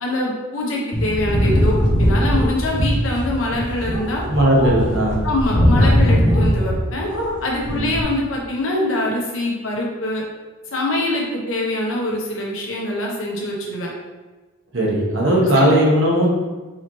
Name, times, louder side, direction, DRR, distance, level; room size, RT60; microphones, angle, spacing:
voice 1, 0.0-4.2 5.2-7.1 7.4-10.2 10.7-13.9 15.6-15.8, left 1 dB, 80° left, -2 dB, 1.0 m, -24 dB
sound 1, 0.9-6.9 7.1-8.0, equal, 55° left, 0.8 m, -19 dB
voice 2, 4.3-5.3 7.7-7.9 14.7-16.3, right 1 dB, 70° right, -3 dB, 1.1 m, -17 dB
4.7 x 2.9 x 3.1 m, 1.3 s
head